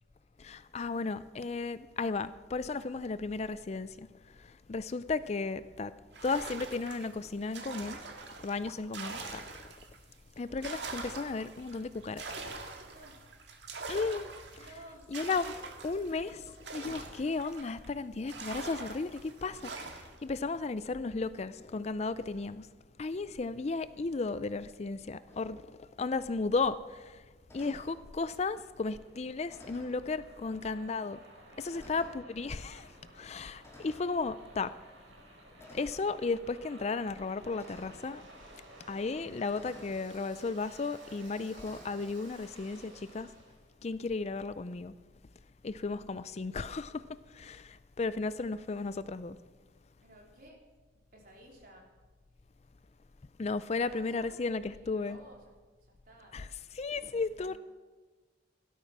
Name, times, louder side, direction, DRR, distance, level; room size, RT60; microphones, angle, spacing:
voice 1, 0.4-4.1 4.4-5.9 6.2-8.0 8.4-9.6 10.4-12.2 13.9-14.7 15.1-15.5 15.8-22.7 23.0-27.2 27.5-31.2 31.6-32.9 33.2-34.7 35.7-38.2 38.9-43.3 43.8-44.9 45.6-47.0 47.3-49.4 53.4-55.2 56.3-56.5 56.7-57.6, left 3 dB, 35° left, 0.4 m, -34 dB
sound 1, 6.1-10.0 10.4-17.9 18.3-20.2, right 4 dB, 65° right, 1.9 m, -44 dB
voice 2, 12.8-13.2 14.6-15.1 29.9-30.4 31.6-32.0 50.0-50.6 51.1-51.9 53.8-54.4 54.7-55.5 55.9-56.4 57.0-57.6, right 1 dB, 45° right, 3.7 m, -55 dB
sound 2, 25.3-25.5 27.5-28.0 29.5-30.0 30.9-31.0 31.7-32.2 33.6-34.1 35.6-36.1 37.6-38.0 39.6-40.0 41.5-42.0, left 1 dB, 15° left, 2.6 m, -53 dB
Waves surf, 28.0-43.6, right 1 dB, 85° right, 4.8 m, -55 dB
16.5 x 12.5 x 6.0 m
head